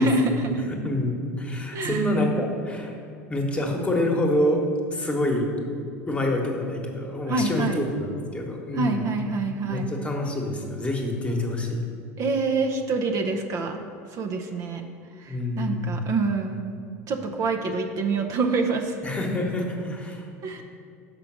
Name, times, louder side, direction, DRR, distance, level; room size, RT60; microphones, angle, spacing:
voice 1, 0.0-0.6 1.7-2.2 7.3-7.8 8.7-9.9 12.2-13.8 14.1-14.8 15.2-16.6 17.1-19.0 20.4-20.6, right 3 dB, 45° right, 4 dB, 0.6 m, -26 dB
voice 2, 0.6-2.9 3.3-4.6 4.9-5.5 6.1-9.0 9.7-11.8 15.3-16.1 19.0-20.3, left 1 dB, 15° left, 1 dB, 1.2 m, -27 dB
5.7 x 5.2 x 6.1 m, 2.5 s
hypercardioid pair, 90°, 8 cm